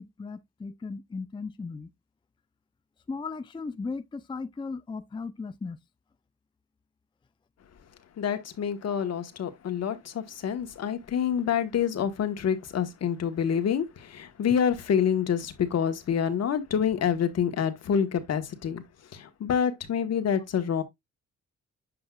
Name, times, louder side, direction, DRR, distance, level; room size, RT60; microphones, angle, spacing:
voice 1, 0.0-1.9 3.1-5.8, left 4 dB, 15° left, 0.5 m, -36 dB
voice 2, 8.2-18.8 19.1-20.8, left 8 dB, 55° left, 1.3 m, -27 dB
7.9 x 5.4 x 2.3 m
cardioid pair, 90°, 30 cm